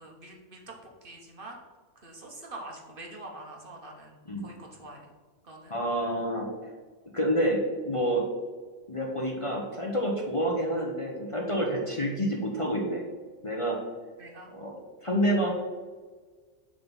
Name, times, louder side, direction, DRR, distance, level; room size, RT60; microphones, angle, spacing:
voice 1, 0.0-1.6 2.0-4.1 4.4-5.0 5.5-5.7 14.2-14.5, right 2 dB, 45° right, 0 dB, 1.2 m, -45 dB
voice 2, 5.7-6.5 7.1-8.2 8.9-13.0 13.4-13.8 14.5-15.5, equal, 30° left, -2 dB, 0.9 m, -28 dB
7.7 x 3.7 x 5.3 m, 1.4 s
omnidirectional pair, 1.3 m